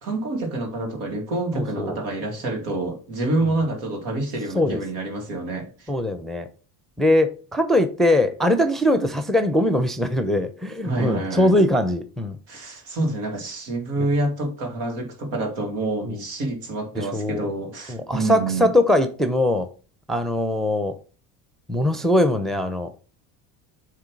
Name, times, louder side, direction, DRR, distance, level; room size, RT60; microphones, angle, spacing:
voice 1, 0.0-5.9 10.8-11.5 12.5-18.7, right 2 dB, 70° right, 2.4 m, -27 dB
voice 2, 1.5-2.0 2.4-2.6 4.5-4.8 5.9-6.5 7.0-12.4 14.0-14.1 16.0-16.2 16.9-17.5 17.9-19.7 20.1-21.0 21.7-22.9, left 1 dB, ahead, 0.7 m, -21 dB
7.4 x 3.3 x 4.7 m
supercardioid pair, 80°, 47 cm